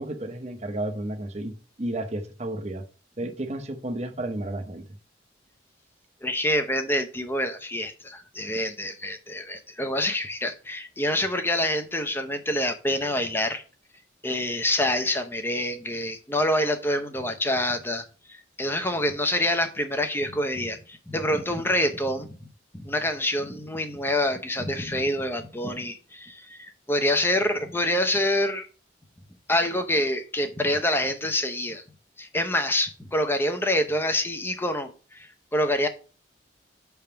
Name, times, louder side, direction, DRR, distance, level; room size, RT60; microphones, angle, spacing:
voice 1, 0.0-1.5 1.8-2.8 3.2-4.9, right 1 dB, 35° right, 0.8 m, -32 dB
voice 2, 6.2-13.6 14.2-22.3 22.7-28.7 29.5-31.8 32.2-35.9, left 1 dB, 10° left, 0.7 m, -26 dB
6.3 x 3.5 x 5.7 m
head